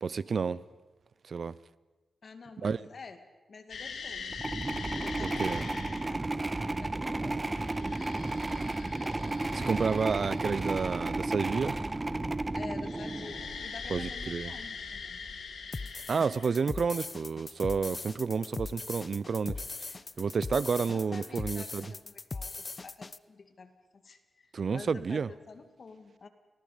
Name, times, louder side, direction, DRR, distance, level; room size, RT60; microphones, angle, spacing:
voice 1, 0.0-0.6 1.3-1.6 2.6-2.9 5.2-5.6 9.5-11.8 13.9-14.5 16.1-19.6 20.2-21.8 24.5-25.3, right 5 dB, 60° right, 0.6 m, -30 dB
voice 2, 2.2-3.2 3.5-4.4 4.9-8.3 9.5-10.1 12.5-15.3 20.8-26.3, left 4 dB, 60° left, 2.3 m, -49 dB
sound 1, 3.7-6.2 7.3-11.2 12.8-16.8 19.8-19.9 21.0-21.4, left 5 dB, 75° left, 2.3 m, -43 dB
sound 2, 4.3-13.7, right 2 dB, 25° right, 1.2 m, -33 dB
sound 3, 15.7-23.2, left 3 dB, 40° left, 0.6 m, -40 dB
29.0 x 19.5 x 5.1 m
cardioid pair, 65°, 0 cm